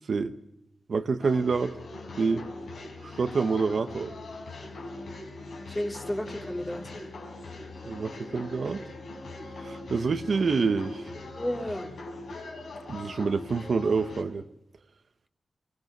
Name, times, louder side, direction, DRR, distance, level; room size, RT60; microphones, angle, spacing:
voice 1, 0.9-1.8 2.2-2.5 3.0-4.1 7.9-8.8 9.6-11.0 12.9-14.4, right 4 dB, 65° right, 8 dB, 1.2 m, -27 dB
Islamic Nakshibendi's Sufi song Ey Kafirin Askeri, 1.2-14.2, left 2 dB, 85° left, 5.4 m, -41 dB
voice 2, 5.7-6.8 11.4-11.9, left 1 dB, 15° left, 3 dB, 2.8 m, -32 dB
24.5 x 20.0 x 6.7 m, 0.86 s
wide cardioid pair, 90°, 0 cm